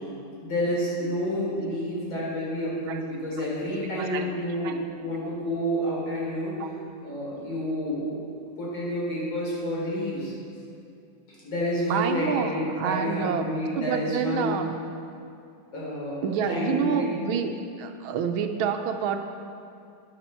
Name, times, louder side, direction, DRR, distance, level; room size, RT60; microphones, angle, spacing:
voice 1, 0.4-6.5 7.0-8.2 8.6-10.3 11.3-14.6 15.7-16.9, equal, 75° left, -6 dB, 4.5 m, -29 dB
voice 2, 11.9-13.5 13.7-14.7 16.2-17.5 17.8-19.2, right 7 dB, 80° right, 6 dB, 1.5 m, -28 dB
12.5 x 10.5 x 4.4 m, 2.5 s
omnidirectional pair, 2.2 m